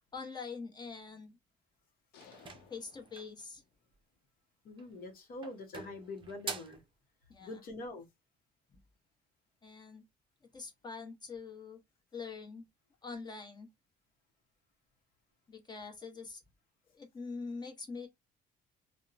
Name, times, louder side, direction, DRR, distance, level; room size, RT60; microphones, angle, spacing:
voice 1, 0.1-1.4 2.7-3.6 7.3-7.6 9.6-10.0 10.5-11.8 12.1-12.7 13.0-13.7 15.5-16.4 16.9-18.1, left 4 dB, 25° left, 0.9 m, -44 dB
sound 1, 2.1-4.0, left 6 dB, 85° left, 0.7 m, -60 dB
sound 2, 2.2-3.4 4.7-5.1 5.4-6.9, right 5 dB, 30° right, 0.5 m, -45 dB
voice 2, 4.6-6.8 7.4-8.1, left 2 dB, 60° left, 0.9 m, -44 dB
2.8 x 2.1 x 2.4 m
cardioid pair, 110°, 17 cm